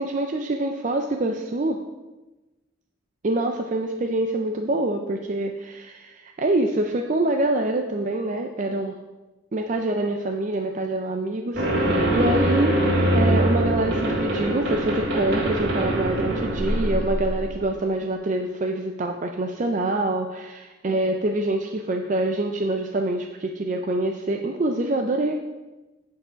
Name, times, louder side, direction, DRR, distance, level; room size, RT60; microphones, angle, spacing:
voice 1, 0.0-1.8 3.2-9.0 9.5-12.7 13.1-25.3, right 2 dB, 40° right, 3 dB, 0.4 m, -25 dB
sound 1, 11.6-17.6, right 1 dB, 55° right, 1.7 m, -23 dB
8.7 x 4.8 x 5.0 m, 1.1 s
head